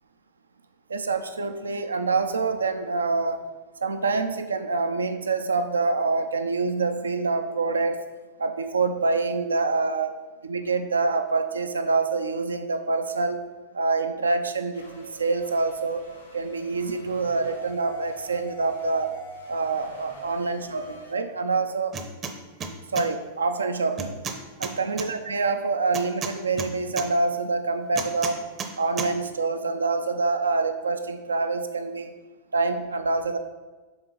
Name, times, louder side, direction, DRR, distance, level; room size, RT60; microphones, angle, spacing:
voice 1, 0.9-3.4 3.8-8.0 8.4-10.1 10.5-13.4 13.7-16.0 16.3-19.1 19.5-20.8 21.1-22.0 22.9-24.3 24.6-28.4 28.8-32.1 32.5-33.4, right 3 dB, 75° right, 8 dB, 0.5 m, -26 dB
sound 1, 14.7-21.1, right 1 dB, 80° left, 2.0 m, -45 dB
sound 2, 21.9-22.3 22.6-23.1 24.0-25.1 25.9-27.1 28.0-28.7 29.0-29.1, right 5 dB, 30° right, 0.7 m, -32 dB
7.2 x 3.7 x 5.1 m, 1.2 s
figure-of-eight pair, 90°, 0 cm